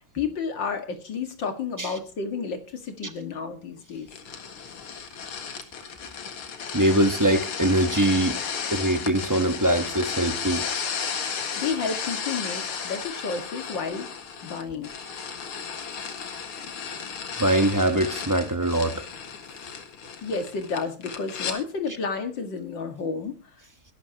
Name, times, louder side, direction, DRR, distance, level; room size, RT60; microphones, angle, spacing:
voice 1, 0.1-4.1 11.6-14.2 14.4-14.9 20.2-23.4, left 5 dB, 60° left, 2.5 m, -31 dB
sound 1, 4.1-21.6, left 6 dB, 85° left, 2.6 m, -34 dB
voice 2, 6.7-8.4 8.7-10.7 17.4-19.0, right 1 dB, 15° right, 0.6 m, -22 dB
21.5 x 12.0 x 2.9 m
omnidirectional pair, 2.3 m